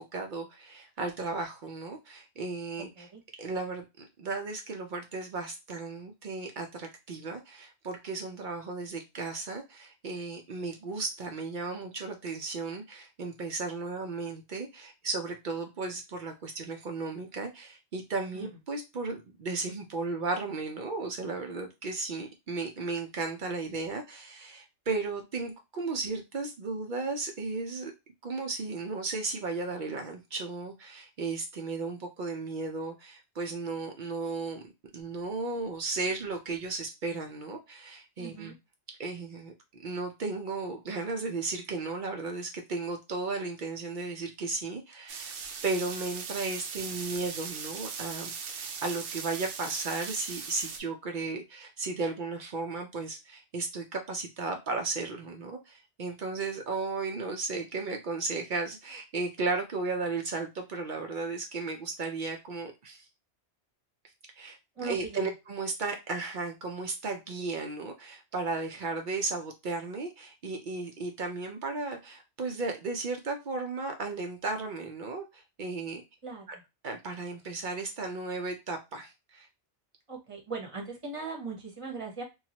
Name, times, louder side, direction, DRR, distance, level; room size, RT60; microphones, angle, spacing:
voice 1, 0.0-3.1 3.4-3.8 4.2-27.9 28.2-34.6 34.9-38.5 39.0-39.5 39.8-45.3 45.6-63.1 64.4-76.0 76.5-76.6 76.8-79.5, right 3 dB, 55° right, 0.6 m, -35 dB
voice 2, 38.2-38.6 64.8-65.3 76.2-76.5 80.1-82.2, right 4 dB, 30° right, 0.9 m, -39 dB
sound 1, 45.1-50.8, right 6 dB, 85° right, 0.9 m, -39 dB
3.0 x 2.3 x 2.8 m
omnidirectional pair, 1.1 m